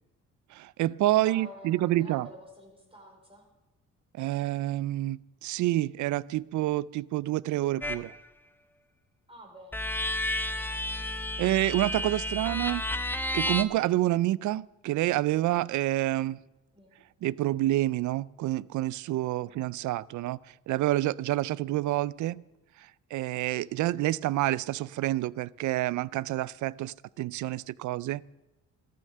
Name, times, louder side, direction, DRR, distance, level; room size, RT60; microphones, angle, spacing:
voice 1, 0.5-2.3 4.2-8.1 11.4-12.8 13.3-16.4 17.2-20.4 20.7-22.4 23.1-28.2, right 15 dB, 75° right, 0.5 m, -28 dB
voice 2, 1.2-3.5 9.3-9.8 16.7-17.0 19.4-19.5, right 1 dB, 20° right, 4.9 m, -49 dB
sound 1, 7.8-8.1 9.7-13.6, left 1 dB, 5° left, 0.9 m, -31 dB
14.0 x 12.5 x 6.8 m
cardioid pair, 90°, 30 cm